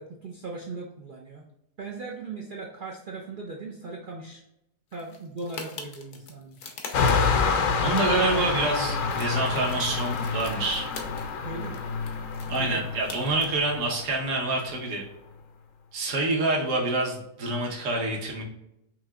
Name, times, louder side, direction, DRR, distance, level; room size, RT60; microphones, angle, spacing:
voice 1, 0.0-1.4 1.8-4.4 4.9-6.6 7.9-8.6 11.4-11.9 12.6-12.9, right 3 dB, 90° right, -1 dB, 0.4 m, -38 dB
sound 1, 4.9-7.6 7.9-11.3 11.6-13.5, left 4 dB, 90° left, 1.3 m, -43 dB
sound 2, 6.9-15.0, left 5 dB, 65° left, 0.8 m, -28 dB
voice 2, 7.8-10.9 12.5-15.0 15.9-18.4, right 2 dB, 60° right, -1 dB, 1.3 m, -27 dB
5.9 x 2.8 x 2.3 m, 0.83 s
omnidirectional pair, 1.6 m